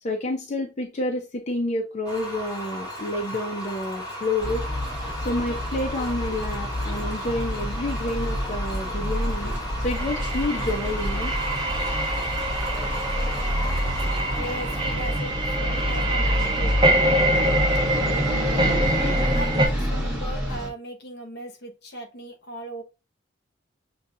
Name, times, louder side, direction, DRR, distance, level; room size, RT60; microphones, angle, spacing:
voice 1, 0.0-4.7 5.2-9.5 9.8-11.3, left 1 dB, 40° left, 0.6 m, -29 dB
sound 1, 2.0-17.0, equal, 20° left, 3.0 m, -36 dB
sound 2, 4.4-20.7, equal, 5° right, 2.1 m, -28 dB
sound 3, 9.9-19.7, right 1 dB, 25° right, 1.2 m, -25 dB
voice 2, 14.4-17.7 18.5-22.8, equal, 60° left, 1.1 m, -37 dB
6.9 x 2.8 x 2.4 m
head